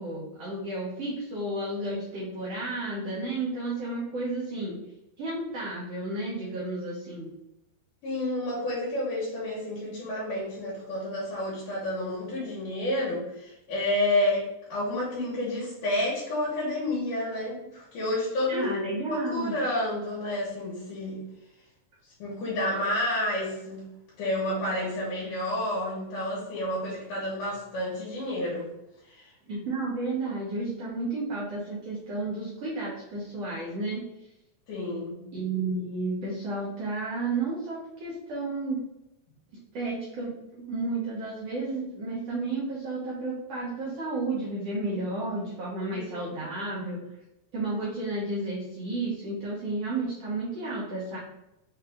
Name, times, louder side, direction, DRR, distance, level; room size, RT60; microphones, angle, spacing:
voice 1, 0.0-4.8 5.2-7.3 18.5-19.5 29.5-34.0 35.3-38.8 39.7-47.0 47.5-51.2, right 2 dB, 65° right, -7 dB, 1.6 m, -32 dB
voice 2, 8.0-18.8 19.1-21.2 22.2-23.8 24.2-28.7 29.1-29.3 34.7-35.2 45.9-46.5, left 1 dB, 75° left, -7 dB, 2.7 m, -30 dB
5.7 x 2.4 x 3.4 m, 0.89 s
omnidirectional pair, 3.8 m